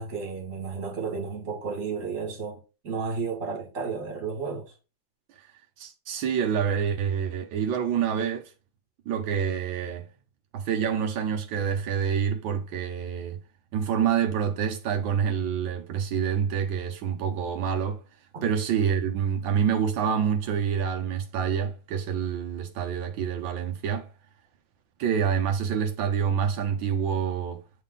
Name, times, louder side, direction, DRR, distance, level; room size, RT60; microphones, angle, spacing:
voice 1, 0.0-4.7 18.3-18.5, right 5 dB, 40° right, 2.2 m, -33 dB
voice 2, 5.8-8.5 9.1-10.1 10.5-13.4 13.7-18.0 18.4-24.1 25.0-27.6, right 7 dB, 85° right, 1.5 m, -27 dB
8.4 x 3.6 x 3.8 m
omnidirectional pair, 2.1 m